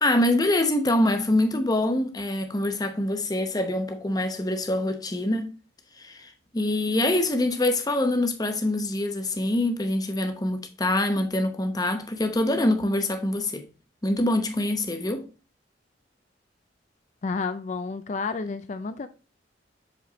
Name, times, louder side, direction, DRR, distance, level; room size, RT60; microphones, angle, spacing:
voice 1, 0.0-5.5 6.0-13.6 14.0-15.3, left 1 dB, 20° left, 0.8 m, -25 dB
voice 2, 17.2-19.1, left 4 dB, 40° left, 0.4 m, -30 dB
7.5 x 4.2 x 3.0 m
head